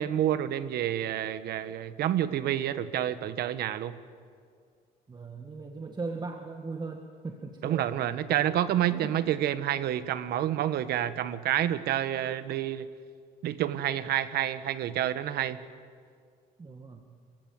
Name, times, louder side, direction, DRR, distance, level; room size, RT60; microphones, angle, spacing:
voice 1, 0.0-4.0 7.6-12.9 13.4-15.6, right 11 dB, 70° right, 13 dB, 1.3 m, -29 dB
voice 2, 5.1-8.3 8.9-9.4 16.6-17.0, right 3 dB, 25° right, 4 dB, 1.8 m, -39 dB
28.0 x 15.5 x 9.5 m, 2.1 s
cardioid pair, 110°, 17 cm